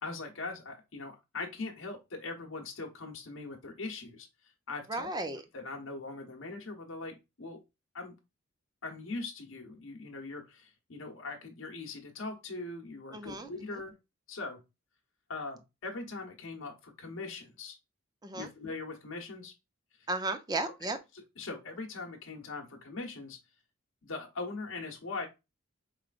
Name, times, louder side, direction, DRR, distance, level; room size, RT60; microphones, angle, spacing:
voice 1, 0.0-4.3 4.7-5.1 5.5-7.6 7.9-8.2 8.8-13.9 14.3-14.6 15.3-17.8 18.3-19.5 21.4-23.4 24.0-25.3, left 3 dB, 70° left, 1.0 m, -41 dB
voice 2, 4.9-5.4 13.1-13.8 18.2-18.5 20.1-21.0, right 2 dB, 20° right, 0.6 m, -35 dB
4.9 x 3.2 x 2.4 m
head